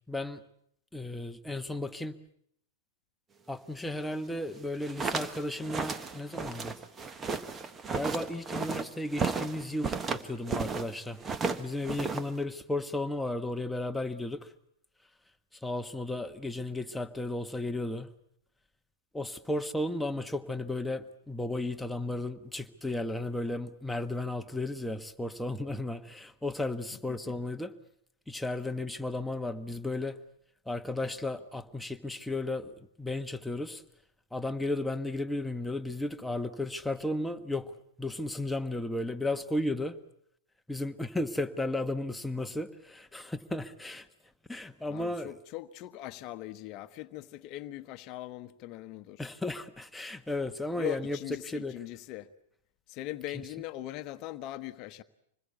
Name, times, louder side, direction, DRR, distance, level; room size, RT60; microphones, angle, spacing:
voice 1, 0.1-0.4 0.9-2.1 3.5-6.8 7.9-11.2 11.6-14.5 15.6-18.1 19.1-27.7 28.3-30.2 30.7-32.7 33.0-33.8 34.3-37.7 38.0-40.0 40.7-44.1 44.5-45.3 49.2-51.2 51.4-51.7, left 2 dB, 5° left, 1.3 m, -34 dB
sound 1, 4.7-10.9 11.2-12.4, right 5 dB, 20° right, 1.3 m, -34 dB
voice 2, 26.9-27.3 44.9-49.2 50.7-52.3 52.9-55.0, left 15 dB, 45° left, 1.1 m, -40 dB
26.0 x 21.0 x 8.3 m
hypercardioid pair, 105°, 0 cm